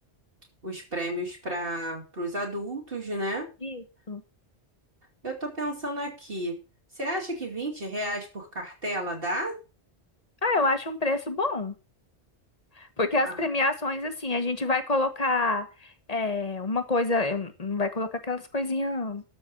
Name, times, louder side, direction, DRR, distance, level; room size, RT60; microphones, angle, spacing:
voice 1, 0.6-3.5 5.2-6.6 7.0-9.6 13.2-13.4, right 1 dB, 55° right, -1 dB, 2.9 m, -32 dB
voice 2, 3.6-4.2 10.4-11.7 12.8-19.2, left 2 dB, 35° left, 8 dB, 1.6 m, -27 dB
12.5 x 4.7 x 7.4 m, 0.31 s
omnidirectional pair, 1.1 m